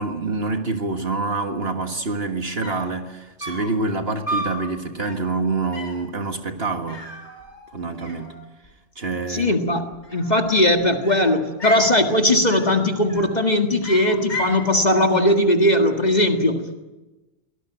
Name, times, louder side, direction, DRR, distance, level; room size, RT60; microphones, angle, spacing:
voice 1, 0.0-7.0 7.7-8.3 9.0-9.5, right 3 dB, 60° right, 5 dB, 1.9 m, -26 dB
sound 1, 2.3-2.4 2.6-3.0 3.4-3.8 4.3-4.6 5.0-5.3 5.7-6.1 6.9-7.7 8.0-8.7 9.9-10.6 11.0-12.0 12.5-12.8 13.1-13.4 13.8-14.6, equal, 75° left, 5.5 m, -33 dB
voice 2, 9.3-16.6, left 1 dB, 40° left, 4 dB, 1.9 m, -19 dB
24.0 x 18.5 x 9.1 m, 1.1 s
omnidirectional pair, 1.2 m